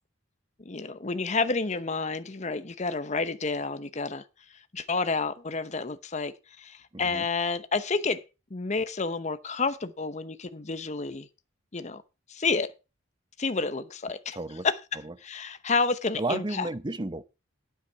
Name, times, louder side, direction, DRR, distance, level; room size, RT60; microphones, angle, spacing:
voice 1, 0.6-4.2 4.7-8.2 8.5-11.3 11.7-12.0 12.3-12.7 13.4-14.4 14.6-14.7 15.2-16.7, left 4 dB, 35° left, 0.8 m, -29 dB
voice 2, 6.9-7.3 14.3-14.7 15.0-15.1 16.2-17.2, right 2 dB, 25° right, 0.6 m, -32 dB
9.6 x 8.2 x 5.8 m
head